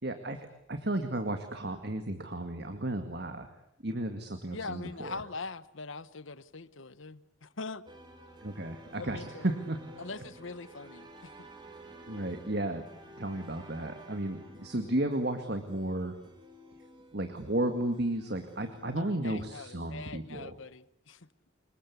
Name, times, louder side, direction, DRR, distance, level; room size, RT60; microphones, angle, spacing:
voice 1, 0.0-3.5 3.8-5.2 8.4-9.8 12.1-12.8 13.2-16.2 17.1-20.5, right 1 dB, 55° right, 2.1 m, -33 dB
voice 2, 4.5-7.8 9.0-9.5 10.0-11.5 19.0-21.3, left 4 dB, 75° left, 1.1 m, -42 dB
sound 1, 7.9-19.0, right 1 dB, 25° right, 3.8 m, -52 dB
27.0 x 22.5 x 8.4 m
head